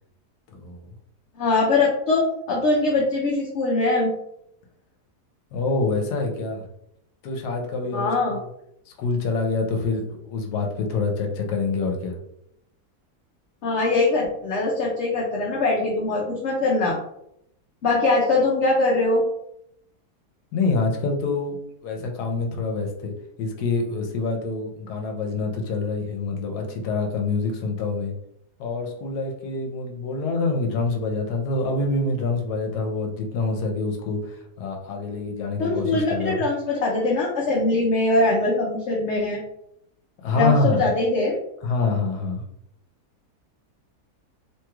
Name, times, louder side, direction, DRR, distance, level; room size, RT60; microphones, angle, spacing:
voice 1, 1.4-2.2 2.5-4.1 7.9-8.4 13.6-17.0 17.8-19.2 35.6-39.4 40.3-41.4, left 2 dB, 65° left, -2 dB, 0.7 m, -22 dB
voice 2, 5.5-6.6 7.2-8.4 8.9-12.1 20.5-21.6 21.8-23.1 23.4-28.1 28.6-36.4 40.2-40.8 41.6-42.4, left 3 dB, 85° left, 2 dB, 1.2 m, -26 dB
3.0 x 3.0 x 2.3 m, 0.77 s
omnidirectional pair, 1.7 m